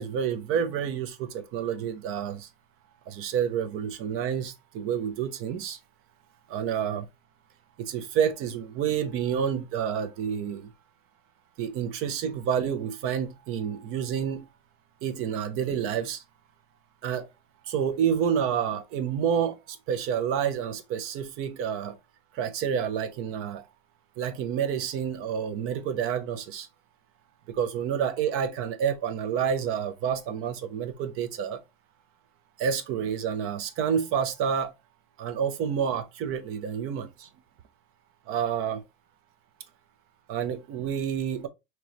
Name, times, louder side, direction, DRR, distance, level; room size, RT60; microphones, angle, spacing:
voice 1, 0.0-2.5 3.1-5.8 6.5-7.1 7.8-10.7 11.6-14.4 15.0-16.2 17.0-17.3 17.7-22.0 22.3-23.6 24.2-26.7 27.5-31.6 32.6-34.7 35.2-37.3 38.3-38.8 40.3-41.5, right 8 dB, 50° right, 0.8 m, -29 dB
4.7 x 3.0 x 3.0 m
supercardioid pair, 115°, 29 cm